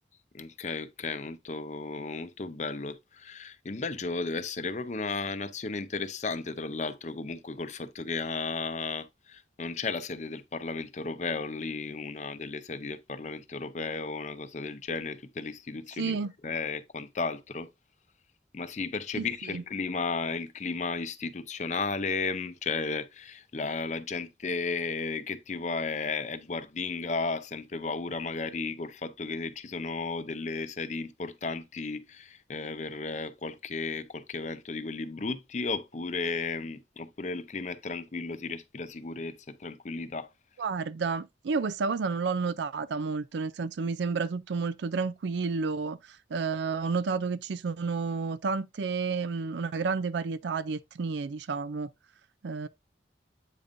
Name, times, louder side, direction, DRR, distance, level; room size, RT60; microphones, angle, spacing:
voice 1, 0.3-16.2 16.4-17.7 18.5-40.3, left 4 dB, 40° left, 0.6 m, -34 dB
voice 2, 16.0-16.3 19.1-19.6 40.6-51.9 52.4-52.7, right 4 dB, 75° right, 0.4 m, -31 dB
8.3 x 5.1 x 2.5 m
head